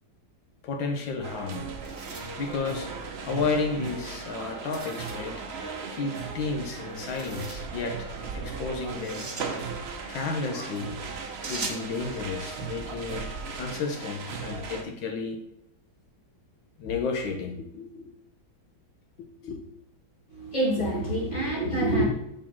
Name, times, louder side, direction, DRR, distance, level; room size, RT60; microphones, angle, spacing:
voice 1, 0.6-1.7 2.4-3.0 3.2-5.4 5.9-9.3 10.1-11.0 11.4-15.4 16.8-18.1 19.4-19.6, left 4 dB, 70° left, 1.6 m, -32 dB
sound 1, 1.2-14.8, right 5 dB, 60° right, 0.7 m, -37 dB
sound 2, 1.7-3.3 4.7-5.3 7.0-7.7 8.9-9.5 11.4-11.9, right 3 dB, 35° right, 1.1 m, -40 dB
voice 2, 20.3-22.0, right 1 dB, 35° left, 2.9 m, -26 dB
5.9 x 4.5 x 5.9 m
omnidirectional pair, 2.2 m